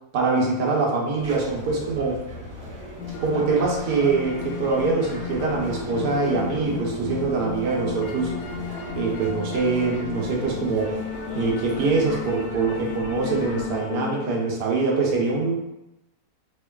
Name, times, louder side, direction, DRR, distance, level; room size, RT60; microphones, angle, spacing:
voice 1, 0.1-2.2 3.2-8.3 8.9-11.0 11.3-15.7, right 4 dB, 70° right, -2 dB, 1.4 m, -24 dB
sound 1, 1.2-13.8, equal, 35° right, 1.2 m, -39 dB
sound 2, 3.0-14.3, left 6 dB, 80° left, 1.3 m, -34 dB
4.3 x 3.0 x 2.3 m, 0.91 s
omnidirectional pair, 1.9 m